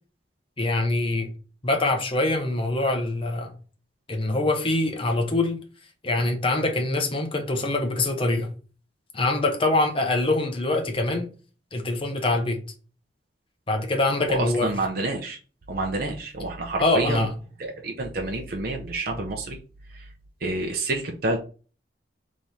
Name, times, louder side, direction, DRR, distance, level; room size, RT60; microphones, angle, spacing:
voice 1, 0.6-1.3 1.6-3.5 4.1-5.6 6.0-8.5 9.1-11.3 11.7-12.6 13.7-14.7 16.8-17.3, left 2 dB, 30° left, 0.9 m, -24 dB
voice 2, 14.3-15.4 15.7-17.3 17.6-19.6 19.9-20.1 20.4-21.4, right 2 dB, 55° right, 0.7 m, -28 dB
3.5 x 3.1 x 4.1 m
head